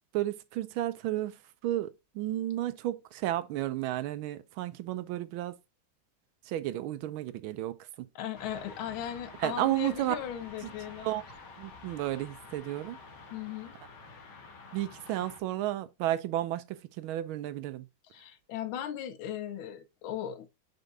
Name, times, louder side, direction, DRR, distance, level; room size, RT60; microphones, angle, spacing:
voice 1, 0.1-5.6 6.5-8.1 9.4-10.2 10.6-10.7 11.0-11.2 11.6-13.0 14.7-17.9, right 14 dB, 85° right, 1.4 m, -32 dB
voice 2, 8.1-11.1 13.3-13.7 18.1-20.5, left 10 dB, 85° left, 1.6 m, -37 dB
sound 1, 8.3-15.4, left 4 dB, 60° left, 1.8 m, -49 dB
5.3 x 4.6 x 3.9 m
omnidirectional pair, 2.2 m